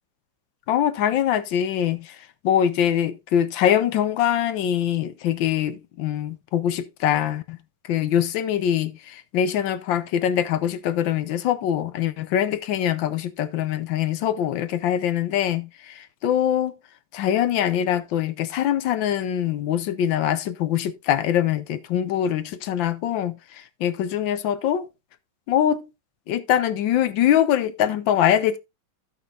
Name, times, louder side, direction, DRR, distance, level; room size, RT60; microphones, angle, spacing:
voice 1, 0.7-2.2 2.4-7.6 7.8-16.7 17.1-24.9 25.5-25.9 26.3-28.6, left 10 dB, 70° left, 1.4 m, -23 dB
15.5 x 5.5 x 2.4 m
omnidirectional pair, 2.2 m